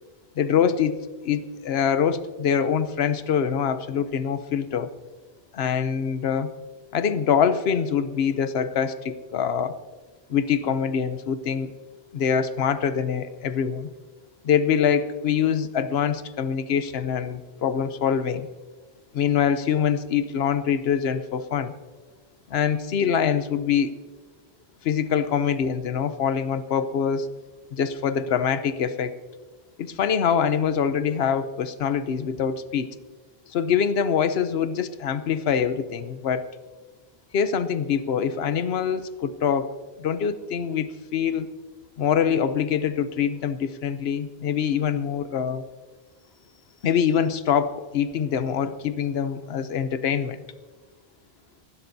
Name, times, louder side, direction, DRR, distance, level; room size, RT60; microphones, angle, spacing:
voice 1, 0.4-4.9 5.5-6.5 6.9-9.8 10.3-11.7 12.1-13.9 14.4-18.5 19.1-21.7 22.5-23.9 24.8-27.3 27.7-29.2 29.8-32.9 33.5-36.5 37.3-39.7 40.0-41.5 42.0-45.6 46.8-50.4, left 7 dB, 75° left, 12 dB, 1.0 m, -24 dB
25.5 x 12.0 x 2.7 m, 1.4 s
omnidirectional pair, 1.0 m